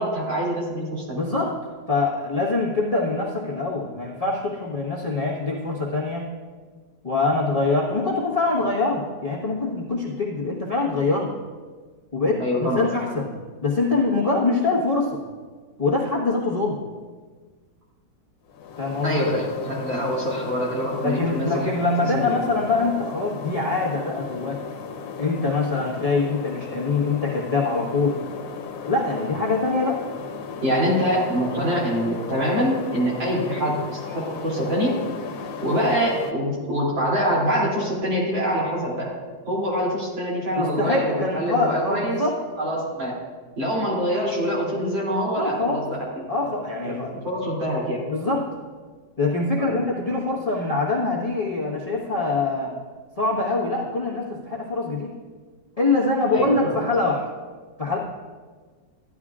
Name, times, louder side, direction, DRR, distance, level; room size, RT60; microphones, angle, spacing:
voice 1, 0.0-1.2 12.4-12.9 19.0-21.7 22.0-22.3 30.6-35.0 35.6-39.1 39.5-42.2 42.6-43.2 43.6-46.0 46.8-48.0 49.6-49.8 56.3-56.8, equal, 85° right, -5 dB, 3.7 m, -25 dB
voice 2, 1.1-1.6 1.9-6.3 7.0-11.3 12.1-13.3 13.6-15.2 15.8-16.8 18.8-19.3 21.0-24.6 25.2-28.2 28.8-30.0 40.6-42.4 45.4-45.8 46.3-47.2 48.1-48.5 49.2-52.7 53.2-55.1 55.8-57.2 57.8-58.0, left 3 dB, 25° left, -4 dB, 1.1 m, -24 dB
sound 1, 18.5-36.3, left 5 dB, 85° left, 1.6 m, -36 dB
14.5 x 11.0 x 2.4 m, 1.5 s
omnidirectional pair, 2.0 m